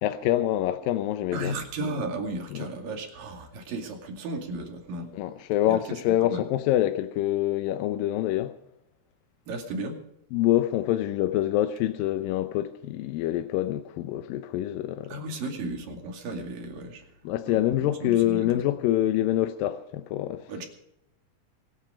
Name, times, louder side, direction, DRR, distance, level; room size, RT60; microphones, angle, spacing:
voice 1, 0.0-1.6 2.5-2.7 5.1-8.6 10.3-15.2 17.2-20.5, left 13 dB, 85° left, 2.5 m, -26 dB
voice 2, 1.3-5.1 5.7-5.8 6.2-6.5 9.5-10.0 15.1-17.0 17.5-18.5 20.5-20.7, right 2 dB, 80° right, 4.2 m, -34 dB
24.0 x 9.0 x 5.1 m
omnidirectional pair, 4.0 m